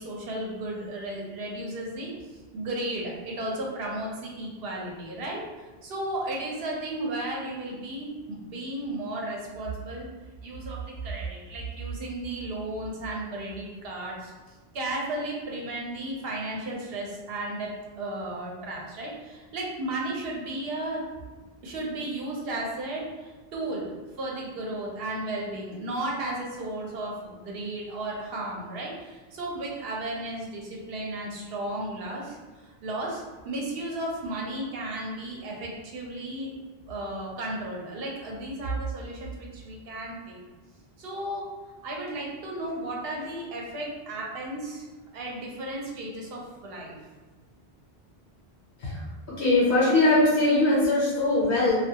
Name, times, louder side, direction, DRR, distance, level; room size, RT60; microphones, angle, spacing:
voice 1, 0.0-2.1 2.5-5.4 5.8-10.1 10.4-14.3 14.7-21.1 21.6-36.5 36.9-40.4 41.0-41.5 41.8-44.9 45.1-47.0, right 1 dB, 70° right, -2 dB, 0.8 m, -34 dB
voice 2, 49.3-51.7, left 2 dB, 65° left, -6 dB, 0.9 m, -21 dB
2.3 x 2.2 x 2.7 m, 1.3 s
omnidirectional pair, 1.1 m